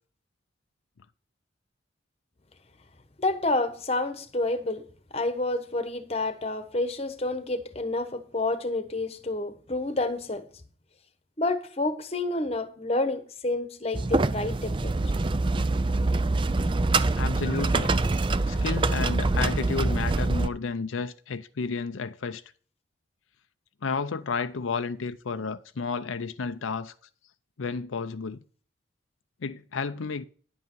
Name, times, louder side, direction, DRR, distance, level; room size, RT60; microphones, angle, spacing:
voice 1, 3.2-4.8 5.1-10.4 11.4-14.9, left 2 dB, 30° left, 1.1 m, -29 dB
sound 1, 13.9-20.5, right 3 dB, 25° right, 0.4 m, -25 dB
voice 2, 17.2-17.9 18.5-22.4 23.8-26.9 27.6-28.4 29.4-30.2, left 4 dB, 90° left, 0.6 m, -32 dB
10.5 x 8.2 x 4.6 m
head